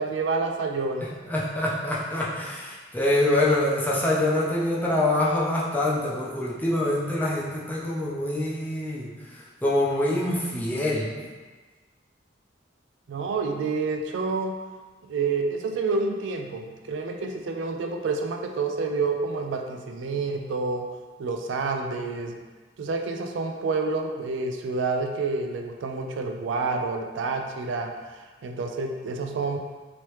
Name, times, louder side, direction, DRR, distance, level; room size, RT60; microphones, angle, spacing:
voice 1, 0.0-1.2 13.1-14.6 15.1-20.9 21.2-22.4 22.8-27.9 28.4-29.6, right 4 dB, 70° right, 3 dB, 0.3 m, -28 dB
voice 2, 1.3-9.1 9.6-11.2, left 1 dB, 10° left, -5 dB, 0.5 m, -25 dB
3.0 x 3.0 x 3.1 m, 1.4 s
head